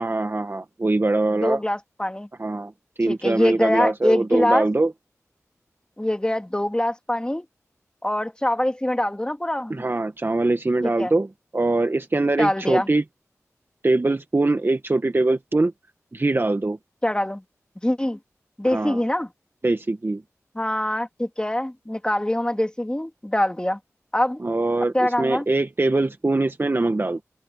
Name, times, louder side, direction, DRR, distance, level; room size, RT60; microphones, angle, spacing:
voice 1, 0.0-1.6 2.4-2.7 3.0-4.9 9.7-11.3 11.5-13.0 13.8-15.7 16.1-16.8 18.7-19.0 19.6-20.2 24.4-27.2, right 2 dB, 40° right, 1.6 m, -22 dB
voice 2, 1.4-2.3 3.1-4.7 6.0-7.4 8.0-9.9 10.8-11.1 12.4-12.9 17.0-17.4 17.8-18.2 18.6-19.3 20.5-23.8 24.1-24.4 24.9-25.4, left 1 dB, 15° left, 2.9 m, -24 dB
cardioid pair, 40°, 6 cm